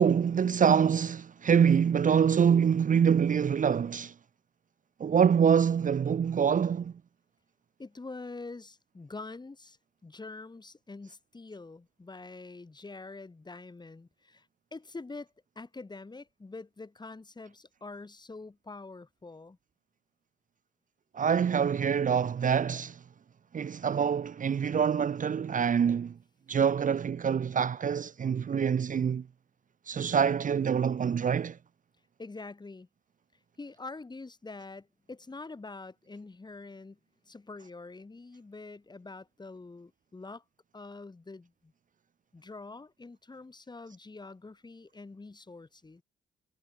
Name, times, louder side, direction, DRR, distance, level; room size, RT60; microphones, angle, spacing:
voice 1, 0.0-4.1 5.0-6.9 21.1-23.0 23.5-26.2 26.5-29.2 29.9-31.6, right 7 dB, 40° right, 0.9 m, -25 dB
voice 2, 7.8-9.8 10.0-14.5 14.7-19.6 32.2-32.9 33.6-40.4 40.7-41.7 42.3-46.0, left 3 dB, 20° left, 3.7 m, -45 dB
cardioid pair, 90°, 20 cm